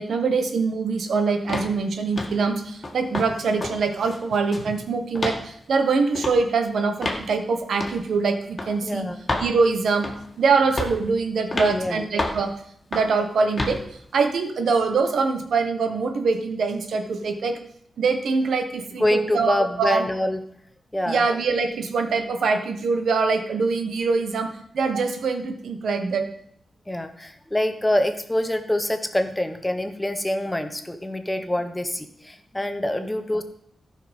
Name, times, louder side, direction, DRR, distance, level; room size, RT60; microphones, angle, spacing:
voice 1, 0.0-9.1 9.4-10.1 10.4-12.5 12.9-13.8 14.1-17.6 18.0-20.1 21.1-26.3, right 4 dB, 85° right, 6 dB, 1.2 m, -23 dB
sound 1, 1.5-1.7 2.2-2.4 2.8-3.3 3.6-3.8 4.1-4.7 5.2-5.4 6.2-6.4 7.0-7.3 7.8-8.0 8.6-8.7 9.3-9.5 10.0-10.3 10.8-11.0 11.5-11.7 12.2-12.4 12.9-13.1 13.6-13.8, left 2 dB, 30° left, 1.8 m, -28 dB
voice 2, 8.8-9.2 11.5-12.1 19.0-20.4 20.9-21.2 26.9-33.4, left 1 dB, 10° left, 8 dB, 1.0 m, -25 dB
13.5 x 5.7 x 5.2 m, 0.67 s
wide cardioid pair, 100°, 0 cm